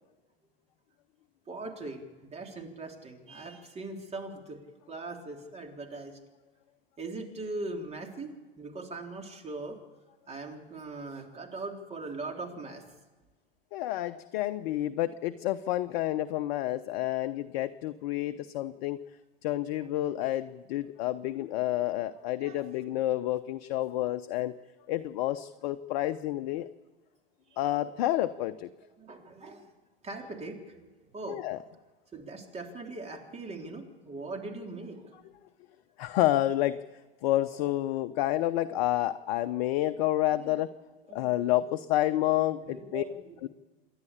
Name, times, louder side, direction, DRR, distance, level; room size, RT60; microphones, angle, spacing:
voice 1, 1.5-4.6 4.9-6.2 7.0-9.8 10.3-12.8 22.3-22.7 27.5-28.0 29.0-29.7 30.0-30.9 31.1-31.4 32.1-35.2 40.3-40.6 41.1-43.5, right 3 dB, 20° right, 2 dB, 3.7 m, -41 dB
voice 2, 13.7-19.0 19.4-24.5 24.9-26.7 27.6-28.7 31.3-31.6 36.0-36.8 37.2-40.7 41.1-43.0 43.4-43.5, left 14 dB, 50° left, 10 dB, 0.8 m, -29 dB
27.0 x 11.0 x 8.6 m, 1.2 s
figure-of-eight pair, 90°, 30 cm